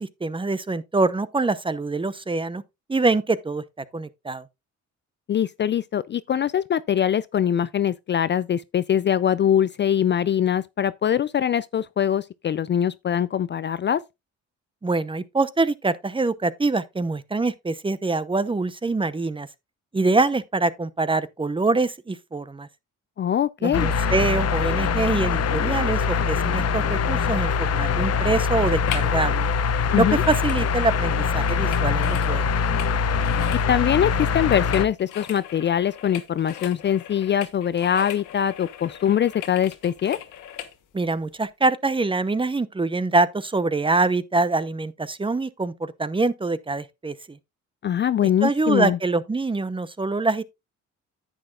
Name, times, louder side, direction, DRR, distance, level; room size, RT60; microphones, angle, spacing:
voice 1, 0.0-2.6 2.9-4.4 14.8-19.5 19.9-22.7 23.6-29.5 29.9-32.5 40.9-47.4 48.4-50.4, right 3 dB, 15° right, 0.7 m, -24 dB
voice 2, 5.3-14.0 23.2-23.9 29.9-30.2 33.7-40.2 47.8-49.0, left 9 dB, 40° left, 0.4 m, -23 dB
sound 1, 23.7-34.9, left 5 dB, 55° left, 0.9 m, -23 dB
sound 2, 28.8-29.2 29.5-40.8 41.3-41.4, left 11 dB, 85° left, 1.2 m, -39 dB
10.0 x 8.9 x 2.4 m
cardioid pair, 90°, 30 cm